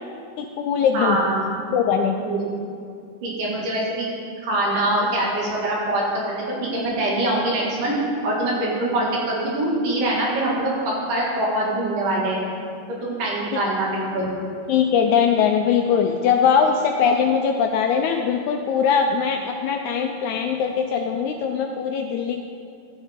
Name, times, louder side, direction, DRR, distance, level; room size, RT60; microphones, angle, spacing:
voice 1, 0.4-1.2 1.7-2.2 14.7-22.4, left 7 dB, 80° left, 3 dB, 1.7 m, -21 dB
voice 2, 0.9-1.4 2.2-2.5 3.2-4.1 4.4-6.4 6.7-7.9 8.2-12.4 13.0-14.3, right 1 dB, 75° right, -4 dB, 3.5 m, -23 dB
13.0 x 8.1 x 3.6 m, 2.4 s
omnidirectional pair, 3.8 m